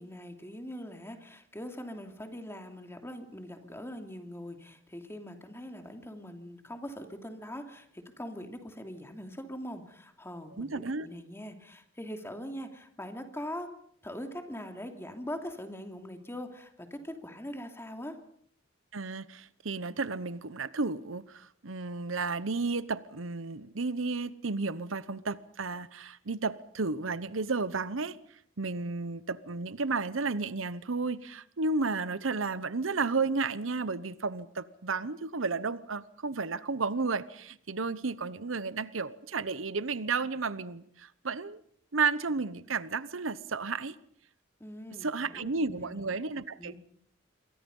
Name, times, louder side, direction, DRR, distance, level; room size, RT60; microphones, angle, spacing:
voice 1, 0.0-13.7 14.0-18.2 44.6-46.0 46.6-46.8, equal, 15° left, 2.9 m, -42 dB
voice 2, 10.6-11.1 18.9-28.2 28.6-41.6 41.9-44.0 45.0-46.7, right 4 dB, 90° right, 1.0 m, -32 dB
27.5 x 23.5 x 5.5 m
head